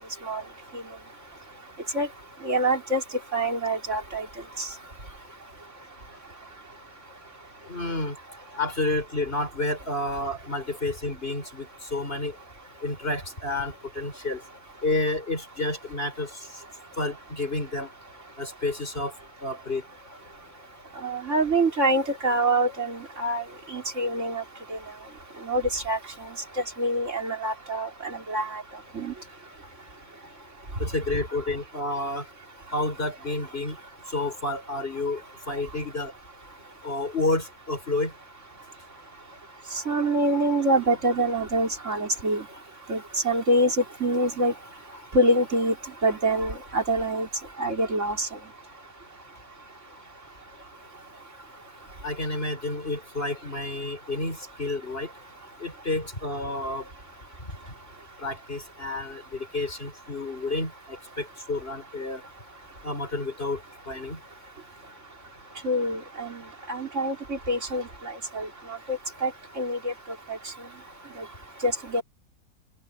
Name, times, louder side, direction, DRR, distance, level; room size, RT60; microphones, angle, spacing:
voice 1, 2.4-3.0 3.3-4.3 4.6-4.7 21.0-23.4 23.7-24.4 24.7-24.8 25.4-26.0 26.8-28.6 28.9-29.1 39.9-42.5 42.9-44.5 45.1-45.7 46.0-47.3 47.6-48.3 65.6-66.4 66.7-68.5 68.9-69.3 69.6-69.9 71.6-72.0, right 1 dB, 50° right, 4.3 m, -25 dB
voice 2, 7.7-8.2 8.6-12.3 12.8-14.4 14.8-16.6 17.0-17.9 18.4-19.1 19.4-19.8 30.8-32.2 32.7-33.8 34.1-35.2 35.5-36.1 36.8-38.1 52.0-55.1 55.6-56.9 58.2-62.2 62.8-63.6 63.9-64.2, left 2 dB, 40° left, 4.8 m, -30 dB
open air
omnidirectional pair, 1.6 m